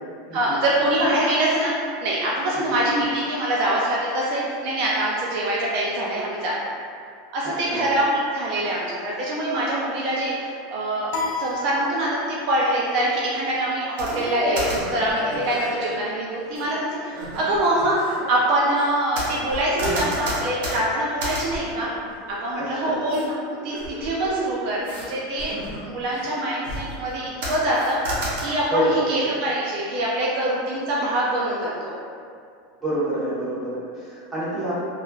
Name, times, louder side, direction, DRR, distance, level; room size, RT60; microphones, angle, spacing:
voice 1, 0.3-6.5 7.3-11.1 11.4-18.0 18.3-21.9 22.3-24.8 25.1-32.0, right 1 dB, 55° right, -5 dB, 0.4 m, -24 dB
sound 1, 11.1-12.6, left 3 dB, 70° left, 0.4 m, -31 dB
sound 2, 14.0-16.0 16.6-16.7 17.1-18.2 18.8-22.6 23.1-23.3 23.7-24.4 24.8-25.1 25.4-26.3 26.6-27.1 27.4-28.4, right 1 dB, 80° right, 0.9 m, -31 dB
voice 2, 22.5-23.0 28.7-29.1 32.8-34.8, right 1 dB, 10° right, -12 dB, 1.1 m, -27 dB
3.0 x 2.3 x 2.4 m, 2.3 s
supercardioid pair, 145°, 0 cm